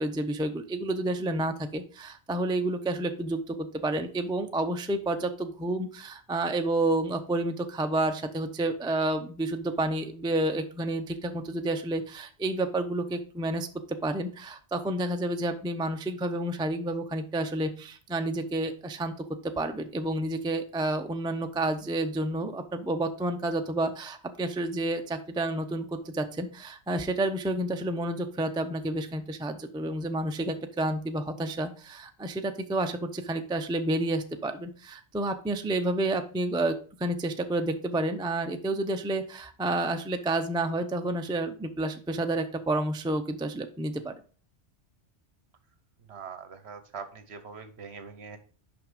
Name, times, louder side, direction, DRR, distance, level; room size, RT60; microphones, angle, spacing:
voice 1, 0.0-19.1 19.6-44.1, right 2 dB, 10° right, 6 dB, 0.3 m, -30 dB
voice 2, 46.1-48.4, right 6 dB, 65° right, 9 dB, 1.2 m, -42 dB
5.9 x 5.3 x 5.0 m, 0.40 s
omnidirectional pair, 1.2 m